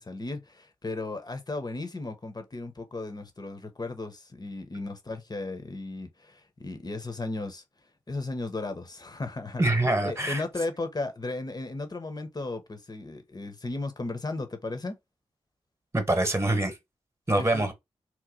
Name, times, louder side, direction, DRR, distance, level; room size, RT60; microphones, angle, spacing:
voice 1, 0.0-7.6 8.1-9.6 10.0-15.0 17.4-17.6, left 2 dB, 35° left, 1.0 m, -35 dB
voice 2, 9.6-10.4 15.9-16.7 17.3-17.7, right 1 dB, 20° right, 1.1 m, -24 dB
3.0 x 2.1 x 3.7 m
cardioid pair, 45°, 12 cm